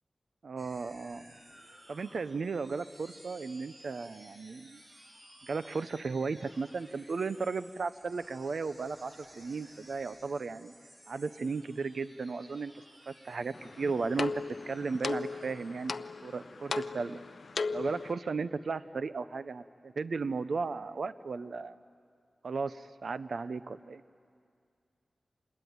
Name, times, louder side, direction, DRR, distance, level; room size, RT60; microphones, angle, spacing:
voice 1, 0.4-1.3 1.9-4.8 5.4-10.7 11.1-12.7 13.1-15.9 16.2-17.2 17.7-21.8 22.4-24.0, right 4 dB, 65° right, 13 dB, 0.6 m, -35 dB
sound 1, 0.6-16.4, equal, 25° right, 3.3 m, -57 dB
sound 2, 13.5-18.1, left 4 dB, 60° left, 0.6 m, -37 dB
26.5 x 21.0 x 9.4 m, 2.3 s
wide cardioid pair, 130°, 0 cm